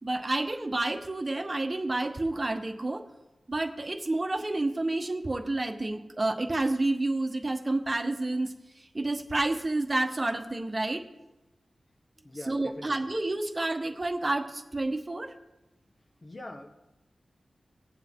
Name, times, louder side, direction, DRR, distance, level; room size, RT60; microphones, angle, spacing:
voice 1, 0.0-3.0 3.5-8.5 8.9-11.1 12.5-15.3, right 2 dB, 40° right, 6 dB, 1.2 m, -29 dB
voice 2, 12.2-13.2 16.2-16.9, left 1 dB, 45° left, 4 dB, 1.3 m, -43 dB
18.5 x 7.3 x 3.7 m, 0.98 s
cardioid pair, 45°, 0 cm